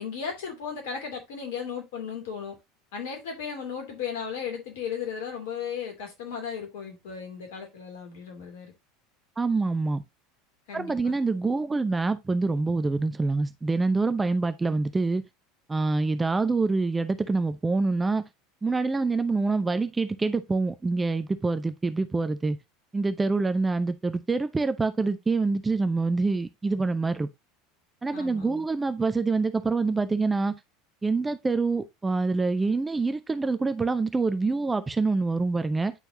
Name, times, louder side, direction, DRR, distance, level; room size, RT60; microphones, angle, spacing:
voice 1, 0.0-2.6 2.9-8.7 10.7-11.1 28.1-28.6, left 7 dB, 65° left, 2.8 m, -35 dB
voice 2, 9.4-10.0 10.7-15.2 15.7-18.2 18.6-22.6 22.9-27.3 28.0-30.5 31.0-35.9, right 3 dB, 15° right, 0.7 m, -26 dB
9.9 x 4.5 x 2.7 m
figure-of-eight pair, 75°, 0 cm